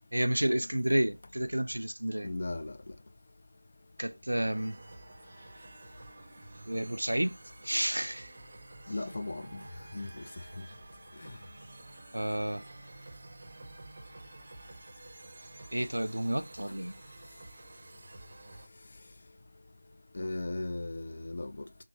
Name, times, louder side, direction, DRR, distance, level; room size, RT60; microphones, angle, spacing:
voice 1, 0.1-2.3 4.0-4.8 6.7-7.4 7.6-8.3 12.1-12.7 15.7-16.9, right 1 dB, 70° right, 0.4 m, -30 dB
voice 2, 2.2-2.8 8.9-9.6 9.9-10.2 20.1-21.5, left 2 dB, 35° left, 0.4 m, -36 dB
sound 1, 4.3-18.7, right 2 dB, 25° right, 0.6 m, -51 dB
3.6 x 2.6 x 2.6 m
figure-of-eight pair, 170°, 0 cm